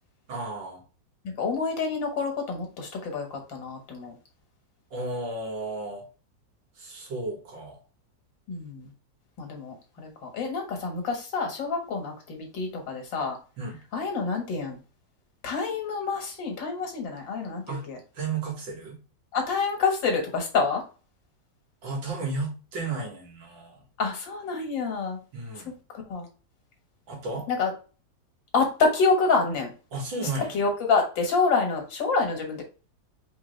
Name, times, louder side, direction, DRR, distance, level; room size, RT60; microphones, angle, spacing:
voice 1, 0.3-0.8 4.9-6.1 6.8-7.8 13.6-13.8 17.7-17.9 18.1-19.0 21.8-23.8 25.3-25.7 27.1-27.5 29.9-30.6, right 3 dB, 85° right, 0 dB, 2.5 m, -33 dB
voice 2, 1.2-4.1 8.5-8.9 9.4-13.4 13.9-14.8 15.4-18.0 19.3-20.8 24.0-25.2 25.9-26.3 27.5-27.7 28.5-29.7 30.5-32.6, left 4 dB, 80° left, 3 dB, 2.2 m, -27 dB
4.9 x 3.4 x 3.2 m, 0.35 s
omnidirectional pair, 2.0 m